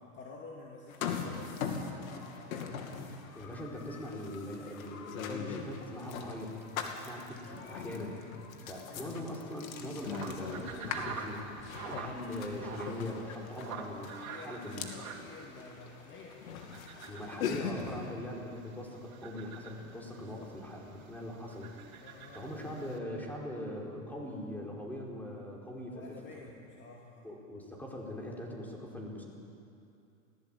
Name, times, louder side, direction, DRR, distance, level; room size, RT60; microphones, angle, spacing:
voice 1, 0.1-2.9 7.5-7.9 8.9-9.0 14.2-16.4 17.9-18.2 20.2-20.5 22.0-22.6 25.9-27.3, left 3 dB, 25° left, -1 dB, 2.4 m, -50 dB
sound 1, 0.9-18.1, left 6 dB, 75° left, 2.6 m, -41 dB
voice 2, 3.3-8.1 8.7-14.9 17.1-21.7 22.3-26.1 26.4-26.5 27.2-29.2, left 1 dB, 5° left, -2 dB, 4.6 m, -41 dB
sound 2, 9.9-23.0, right 6 dB, 80° right, 2.9 m, -48 dB
20.0 x 17.5 x 8.8 m, 2.6 s
hypercardioid pair, 115°, 41 cm